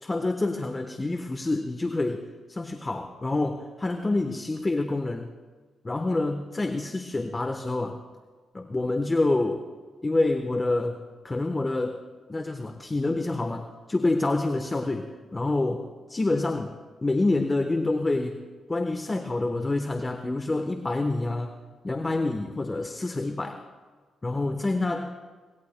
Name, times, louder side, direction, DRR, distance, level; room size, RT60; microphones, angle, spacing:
voice 1, 0.0-5.3 5.8-8.0 8.5-9.6 10.0-11.0 11.2-12.0 12.3-15.8 16.1-18.4 18.7-21.5 21.8-23.6 24.2-25.1, left 2 dB, 25° left, 6 dB, 1.1 m, -27 dB
23.5 x 20.0 x 2.2 m, 1.4 s
supercardioid pair, 60°, 0 cm